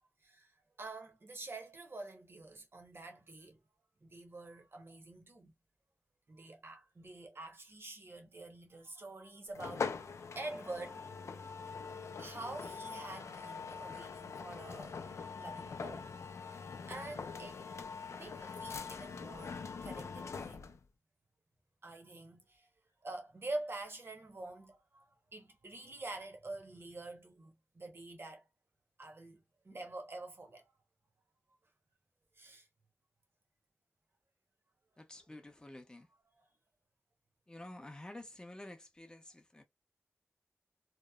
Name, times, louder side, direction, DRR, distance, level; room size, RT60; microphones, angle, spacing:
voice 1, 0.8-3.6 4.0-5.5 6.3-11.1 11.4-11.5 12.2-16.1 16.4-17.6 18.1-20.7 21.8-22.7 23.0-28.4 29.0-30.7 32.4-32.7 36.4-36.5, right 2 dB, 50° right, 0.9 m, -47 dB
sound 1, 9.5-20.8, left 5 dB, 75° left, 0.4 m, -43 dB
voice 2, 35.0-36.1 37.5-39.6, left 1 dB, 15° left, 0.6 m, -50 dB
2.9 x 2.0 x 2.2 m
wide cardioid pair, 90°, 5 cm